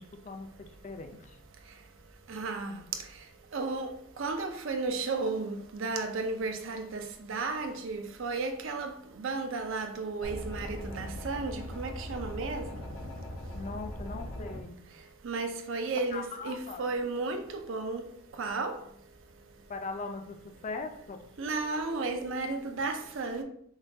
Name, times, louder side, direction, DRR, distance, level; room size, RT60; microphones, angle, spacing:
voice 1, 0.0-1.4 13.5-14.8 16.1-16.9 19.7-21.3, left 3 dB, 35° left, 0.4 m, -40 dB
voice 2, 2.3-2.7 3.5-3.9 4.2-8.9 9.2-12.6 15.2-17.4 17.7-18.0 18.4-18.7 21.4-23.4, right 3 dB, 65° right, 0.5 m, -33 dB
sound 1, 10.2-14.6, equal, 90° left, 0.7 m, -40 dB
5.6 x 2.3 x 2.7 m
head